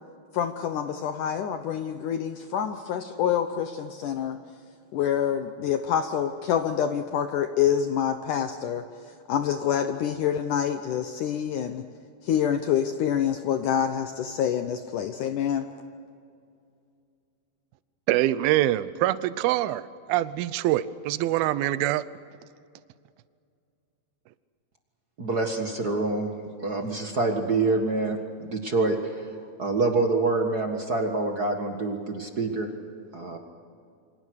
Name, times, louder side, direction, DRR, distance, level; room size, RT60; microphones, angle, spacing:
voice 1, 0.3-4.4 4.9-8.8 9.3-11.8 12.2-15.7, left 9 dB, 70° left, 8 dB, 2.1 m, -26 dB
voice 2, 18.1-19.8 20.1-22.0, right 14 dB, 85° right, 15 dB, 2.6 m, -24 dB
voice 3, 25.2-26.3 26.6-29.3 29.6-32.7 33.1-33.4, right 3 dB, 45° right, 3 dB, 1.2 m, -26 dB
28.5 x 25.0 x 6.5 m, 2.4 s
omnidirectional pair, 4.3 m